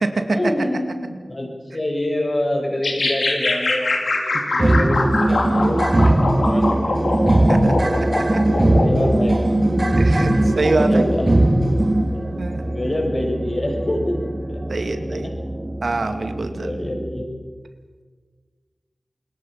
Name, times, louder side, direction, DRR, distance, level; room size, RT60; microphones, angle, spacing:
voice 1, 0.2-7.1 8.5-11.3 12.1-12.2 12.6-14.3 14.7-15.5 16.4-17.4, left 1 dB, 40° left, 2 dB, 6.2 m, -27 dB
sound 1, 2.8-9.1, left 2 dB, 80° left, 3.6 m, -23 dB
voice 2, 4.3-4.8 7.5-7.7 8.1-8.4 10.1-10.3 10.6-11.1 12.4-12.6 14.7-15.3 15.8-16.7, right 3 dB, 75° right, 6 dB, 2.2 m, -24 dB
sound 2, 4.6-17.2, right 1 dB, 40° right, 2.6 m, -20 dB
28.0 x 21.5 x 5.8 m, 1.5 s
wide cardioid pair, 60°, 0 cm